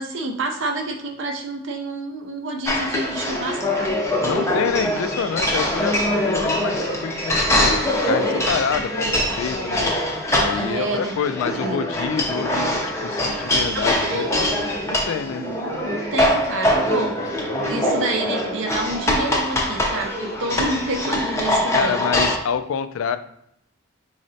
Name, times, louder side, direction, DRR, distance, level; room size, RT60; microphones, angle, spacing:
voice 1, 0.0-4.0 10.6-11.2 11.5-11.8 13.7-14.3 15.4-15.6 15.9-17.2 17.6-22.0, right 2 dB, 60° right, 3 dB, 0.5 m, -28 dB
sound 1, 2.7-22.4, left 1 dB, 15° left, 0.5 m, -23 dB
voice 2, 4.2-9.9 10.3-14.5 14.8-15.4 21.7-23.2, left 6 dB, 70° left, 11 dB, 0.3 m, -27 dB
3.8 x 3.2 x 2.7 m, 0.75 s
head